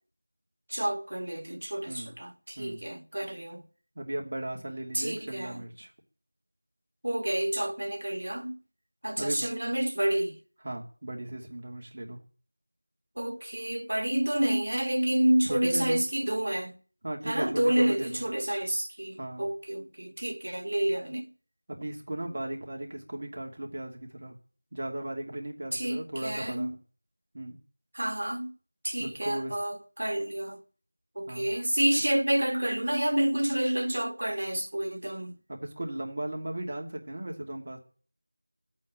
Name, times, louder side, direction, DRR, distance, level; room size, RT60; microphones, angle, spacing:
voice 1, 0.7-3.6 4.9-5.7 7.0-8.6 9.0-10.4 13.2-16.7 17.2-21.3 25.7-26.7 27.9-28.5 28.8-30.6 31.1-35.4, right 1 dB, 65° right, 1.6 m, -29 dB
voice 2, 3.9-5.9 9.2-9.5 10.6-12.2 15.5-16.0 17.0-18.3 19.2-19.5 21.7-24.4 24.7-26.7 27.3-27.6 29.0-29.6 31.3-31.5 35.5-37.8, right 1 dB, 35° right, 2.7 m, -36 dB
12.0 x 8.7 x 9.1 m
figure-of-eight pair, 175°, 0 cm